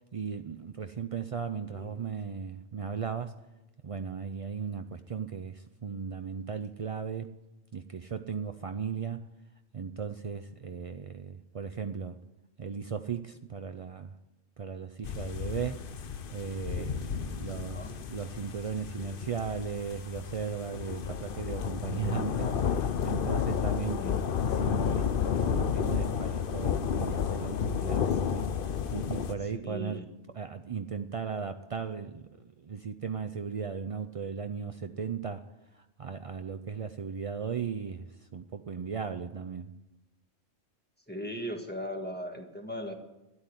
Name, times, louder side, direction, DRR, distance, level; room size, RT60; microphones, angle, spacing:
voice 1, 0.1-3.4 3.8-7.3 7.7-9.2 9.7-12.2 12.6-14.1 14.6-15.9 16.3-24.0 24.5-25.1 25.4-28.5 28.9-30.0 30.4-35.5 35.7-39.7, right 6 dB, 60° right, 8 dB, 0.3 m, -37 dB
sound 1, 15.0-29.3, left 7 dB, 50° left, 0.8 m, -31 dB
voice 2, 21.9-22.7 23.8-24.2 28.1-28.2 29.5-30.1 41.1-43.0, equal, 10° left, 3 dB, 1.6 m, -39 dB
12.5 x 9.8 x 9.7 m, 0.99 s
omnidirectional pair, 1.3 m